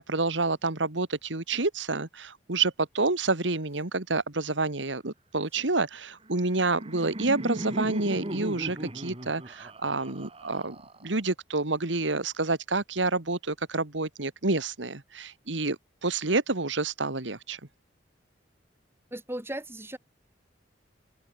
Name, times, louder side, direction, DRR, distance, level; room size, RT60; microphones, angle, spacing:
voice 1, 0.0-10.8 11.0-17.6, right 3 dB, 85° right, 2.1 m, -28 dB
Laughter, 6.3-11.3, right 1 dB, 30° right, 2.7 m, -37 dB
voice 2, 19.1-20.0, right 1 dB, 15° right, 5.5 m, -36 dB
open air
head